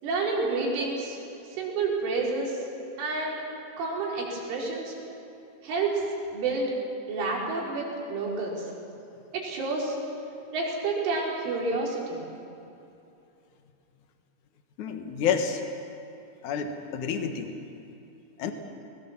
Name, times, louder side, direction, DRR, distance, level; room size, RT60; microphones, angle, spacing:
voice 1, 0.0-1.2 1.5-2.6 3.0-3.4 3.8-4.9 5.6-6.0 6.3-6.7 7.1-8.7 9.3-10.0 10.5-12.3, right 3 dB, 70° right, -3 dB, 6.9 m, -29 dB
voice 2, 14.8-15.6 16.4-17.5 18.4-18.5, left 7 dB, 75° left, 5 dB, 1.8 m, -29 dB
29.0 x 21.0 x 7.4 m, 2.7 s
omnidirectional pair, 5.8 m